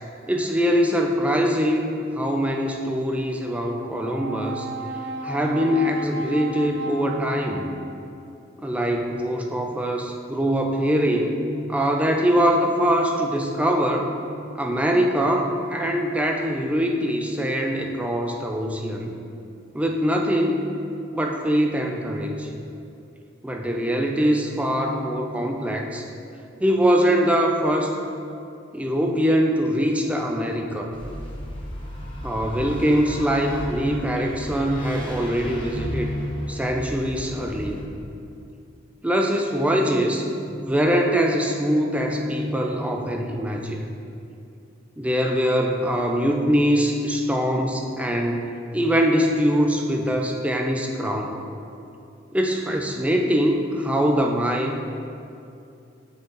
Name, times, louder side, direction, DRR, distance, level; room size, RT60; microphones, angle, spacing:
voice 1, 0.3-4.7 5.2-7.7 8.6-11.3 11.7-14.1 14.5-19.1 19.7-20.6 21.1-22.5 23.4-26.0 26.6-28.0 28.7-31.0 32.2-36.1 36.5-37.8 39.0-40.3 40.6-43.9 45.0-48.4 48.7-51.3 52.3-54.8, equal, 5° right, 2 dB, 0.4 m, -23 dB
Brass instrument, 3.7-8.1, right 2 dB, 65° right, 0.5 m, -34 dB
sound 1, 30.9-37.8, left 1 dB, 25° left, 1.1 m, -33 dB
8.3 x 5.6 x 3.0 m, 2.6 s
head